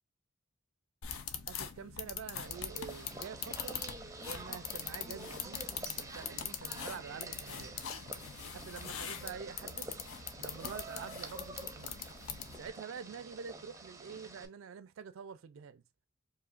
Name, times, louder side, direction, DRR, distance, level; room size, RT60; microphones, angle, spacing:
sound 1, 1.0-12.7, left 8 dB, 80° left, 0.6 m, -43 dB
voice 1, 1.5-3.8 4.2-7.8 8.4-10.0 10.4-12.0 12.6-15.8, right 6 dB, 70° right, 0.4 m, -47 dB
sound 2, 2.4-14.5, right 3 dB, 15° right, 0.6 m, -48 dB
4.8 x 2.7 x 2.4 m
head